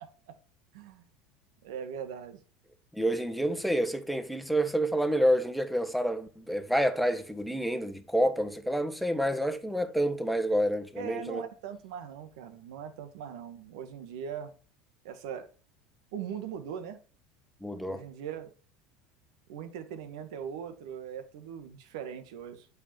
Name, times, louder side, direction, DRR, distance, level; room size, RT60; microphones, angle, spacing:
voice 1, 0.7-1.1 1.6-2.4 11.0-14.5 15.0-15.5 16.1-17.0 17.9-18.5 19.5-22.7, right 8 dB, 80° right, 1.8 m, -40 dB
voice 2, 2.9-11.4 17.6-18.0, equal, ahead, 1.4 m, -28 dB
8.5 x 6.8 x 7.2 m
supercardioid pair, 130°, 3 cm